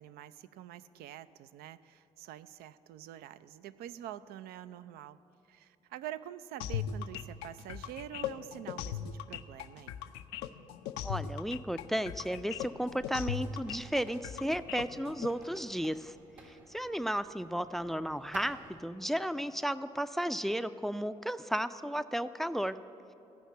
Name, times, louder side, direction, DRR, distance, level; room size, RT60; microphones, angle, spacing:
voice 1, 0.0-5.2 5.5-10.0, right 11 dB, 65° right, 14 dB, 0.4 m, -46 dB
sound 1, 6.6-15.3, left 10 dB, 75° left, 0.5 m, -38 dB
voice 2, 11.0-16.2 16.4-22.8, equal, ahead, 13 dB, 0.4 m, -34 dB
sound 2, 12.6-18.7, right 3 dB, 85° right, 1.5 m, -56 dB
14.5 x 5.8 x 8.2 m, 3.0 s
hypercardioid pair, 45°, 17 cm